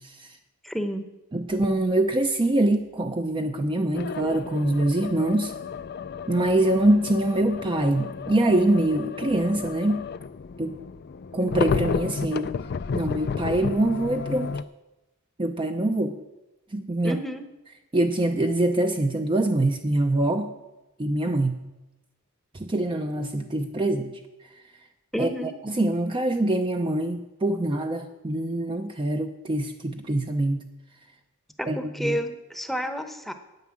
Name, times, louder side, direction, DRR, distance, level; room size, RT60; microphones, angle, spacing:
voice 1, 0.6-1.0 17.0-17.4 25.1-25.5 31.6-33.3, equal, ahead, 7 dB, 0.9 m, -30 dB
voice 2, 1.3-5.5 6.3-10.1 10.6-10.7 11.3-12.5 12.9-14.6 15.4-16.2 16.7-17.2 17.9-20.5 21.0-21.6 22.6-24.2 25.2-30.6 31.7-32.2, right 1 dB, 25° right, 5 dB, 0.6 m, -24 dB
sound 1, 1.5-1.8 3.9-14.6, left 5 dB, 50° left, 0.4 m, -32 dB
9.5 x 9.5 x 7.5 m, 1.0 s
head